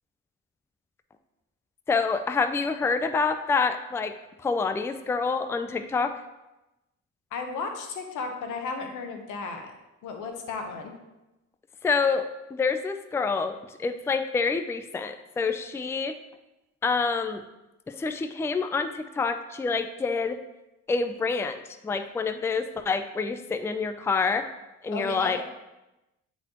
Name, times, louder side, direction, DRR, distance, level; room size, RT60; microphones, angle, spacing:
voice 1, 1.9-4.1 4.4-6.1 11.8-16.2 16.8-17.4 17.9-20.4 20.9-24.5 24.8-25.5, left 4 dB, 10° left, 9 dB, 0.3 m, -27 dB
voice 2, 7.3-9.7 10.0-10.9 24.9-25.3, left 4 dB, 85° left, 4 dB, 1.0 m, -34 dB
9.0 x 4.1 x 2.9 m, 0.97 s
cardioid pair, 90°, 30 cm